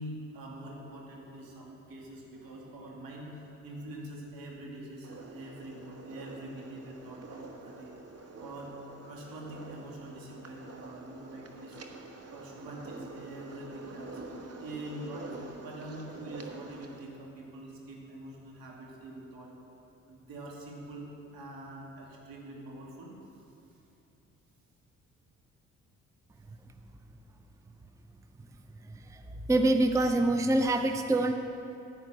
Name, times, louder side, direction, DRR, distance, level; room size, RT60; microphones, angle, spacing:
voice 1, 0.0-7.9 8.4-8.8 9.1-11.8 12.3-19.5 20.1-23.2, right 1 dB, 65° right, -2 dB, 2.4 m, -44 dB
sound 1, 5.0-17.0, right 3 dB, 40° right, 1.3 m, -47 dB
voice 2, 29.5-31.3, right 2 dB, 10° right, 7 dB, 0.6 m, -25 dB
10.5 x 9.0 x 6.2 m, 2.8 s
hypercardioid pair, 45°, 38 cm